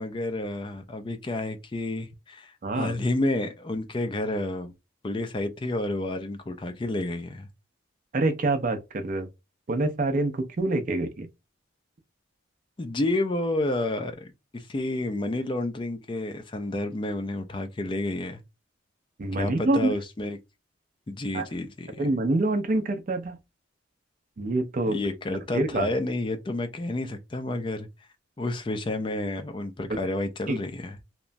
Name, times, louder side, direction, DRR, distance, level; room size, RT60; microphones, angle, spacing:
voice 1, 0.0-4.7 5.0-7.5 12.8-14.3 14.5-18.4 19.4-20.4 21.1-22.1 24.9-27.9 28.4-31.0, left 2 dB, 25° left, 0.3 m, -30 dB
voice 2, 2.6-2.9 8.1-9.3 9.7-11.3 19.2-19.9 21.3-21.5 22.0-23.4 24.4-25.0 25.5-25.9 30.5-30.6, right 2 dB, 40° right, 0.4 m, -26 dB
2.9 x 2.2 x 2.5 m
head